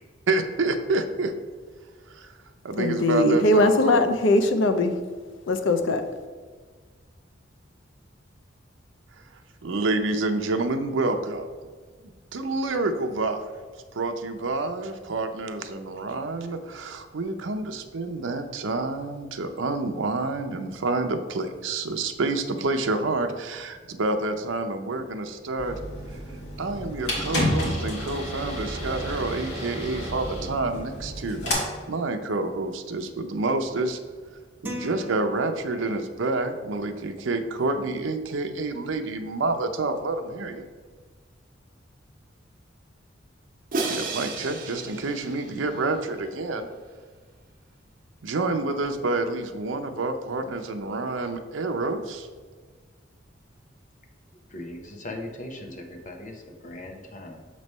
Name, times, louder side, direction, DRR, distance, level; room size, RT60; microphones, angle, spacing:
voice 1, 0.3-1.3 2.1-2.3 2.6-4.0 9.6-11.5 12.3-13.4 13.9-25.8 26.6-34.0 34.6-40.7 43.8-46.7 48.2-52.3, right 3 dB, 85° right, 5 dB, 0.6 m, -28 dB
voice 2, 2.8-5.0 5.5-6.0, left 2 dB, 85° left, 8 dB, 0.6 m, -20 dB
sound 1, 25.6-31.5, left 1 dB, 60° left, 1.7 m, -30 dB
sound 2, 34.6-36.2, left 1 dB, 10° right, 0.9 m, -39 dB
Crash cymbal, 43.7-45.9, right 3 dB, 50° right, 0.9 m, -32 dB
voice 3, 54.5-57.5, left 1 dB, 40° left, 4 dB, 0.8 m, -39 dB
6.8 x 3.2 x 5.3 m, 1.5 s
head